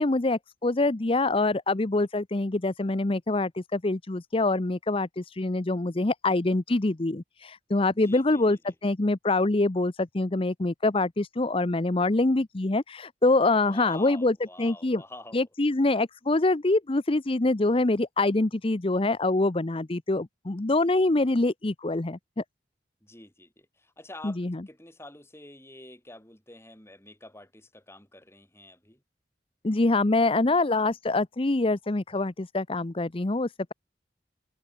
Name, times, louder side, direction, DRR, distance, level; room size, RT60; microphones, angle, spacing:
voice 1, 0.0-15.0 15.3-22.4 24.2-24.6 29.6-33.7, left 2 dB, 30° left, 0.8 m, -25 dB
voice 2, 7.9-8.7 13.6-15.5 23.0-29.0, left 2 dB, 15° left, 5.9 m, -48 dB
head